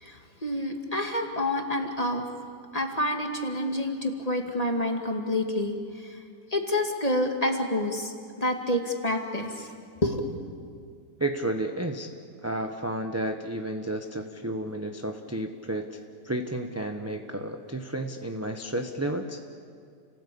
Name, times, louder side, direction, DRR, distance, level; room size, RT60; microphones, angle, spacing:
voice 1, 0.0-2.3 2.7-5.7 6.5-9.7 10.0-10.3, left 1 dB, 20° left, 3 dB, 2.2 m, -28 dB
voice 2, 11.2-12.1 12.4-16.0 16.2-19.5, right 1 dB, 10° right, 4 dB, 0.8 m, -32 dB
30.0 x 18.5 x 8.6 m, 2.3 s
omnidirectional pair, 1.8 m